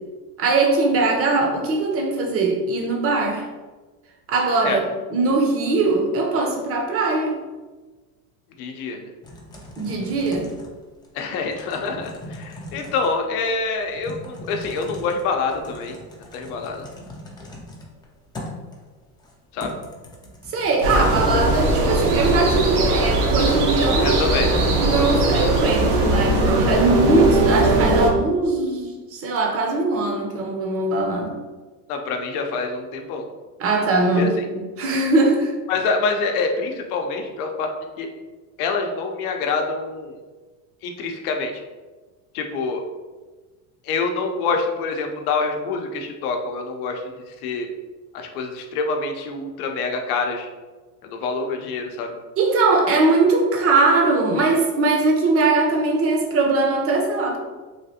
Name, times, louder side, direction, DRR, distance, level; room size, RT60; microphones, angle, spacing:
voice 1, 0.4-3.5 4.3-7.4 9.8-10.5 20.5-31.3 33.6-35.5 52.4-57.4, right 3 dB, 30° right, 2 dB, 0.6 m, -21 dB
voice 2, 8.6-9.1 11.1-16.0 16.3-16.8 19.5-19.7 24.0-24.5 31.9-33.2 34.1-34.3 35.7-37.7 38.0-38.1 38.6-40.2 40.8-41.5 42.3-42.8 43.8-47.0 47.3-47.7 48.1-50.5 51.0-52.1, left 4 dB, 75° left, 3 dB, 0.7 m, -26 dB
Typing, 9.2-22.6, left 1 dB, 10° left, 0.3 m, -40 dB
sound 1, 20.8-28.1, right 1 dB, 75° right, 0.8 m, -19 dB
3.2 x 2.4 x 2.7 m, 1.3 s
supercardioid pair, 110°, 45 cm